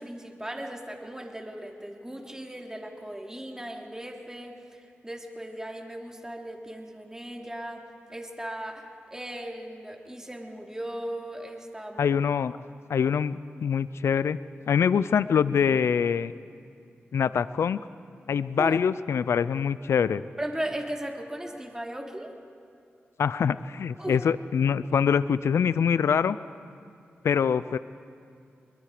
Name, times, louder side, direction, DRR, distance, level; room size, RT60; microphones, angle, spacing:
voice 1, 0.0-12.1 18.6-18.8 20.4-22.3 24.0-24.2, right 1 dB, 15° right, 1 dB, 3.3 m, -37 dB
voice 2, 12.0-12.6 12.9-14.4 14.7-16.3 17.1-17.8 18.3-20.2 23.2-26.4 27.2-27.8, left 7 dB, 80° left, 16 dB, 0.5 m, -24 dB
24.5 x 21.5 x 5.0 m, 2.4 s
cardioid pair, 50°, 4 cm